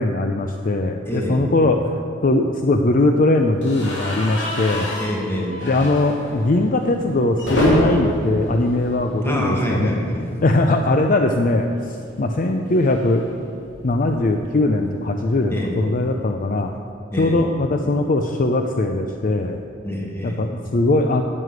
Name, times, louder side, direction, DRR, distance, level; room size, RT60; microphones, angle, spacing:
voice 1, 0.0-1.8 2.2-4.9 5.6-10.0 10.4-11.7 12.2-13.2 13.8-16.7 17.2-19.6 20.2-21.2, left 2 dB, 45° left, 5 dB, 0.5 m, -20 dB
voice 2, 1.1-1.4 5.0-5.6 9.2-10.3 15.5-15.8 17.1-17.4 19.8-20.4, equal, 10° left, -2 dB, 1.8 m, -25 dB
sound 1, 3.6-9.6 9.9-10.1 10.4-10.5 11.8-14.1, equal, 65° left, 2.9 m, -27 dB
9.8 x 7.7 x 8.1 m, 2.5 s
head